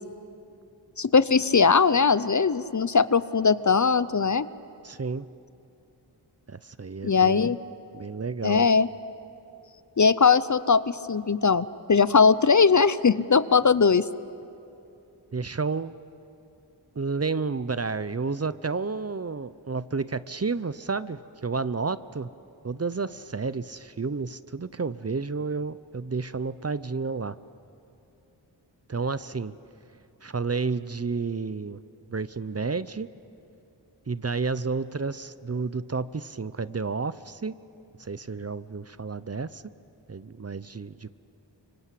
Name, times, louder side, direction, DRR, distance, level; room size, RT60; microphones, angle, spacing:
voice 1, 1.0-4.5 7.0-7.6 8.4-8.9 10.0-14.0, left 5 dB, 40° left, 16 dB, 0.7 m, -20 dB
voice 2, 4.8-5.3 6.5-7.5 7.9-8.7 15.3-16.0 17.0-22.3 22.6-27.3 28.9-29.5 30.2-31.8 32.1-33.1 34.1-37.6 38.0-39.6 40.1-41.1, right 4 dB, 35° right, 15 dB, 0.7 m, -31 dB
25.5 x 24.5 x 8.4 m, 2.7 s
wide cardioid pair, 45°, 44 cm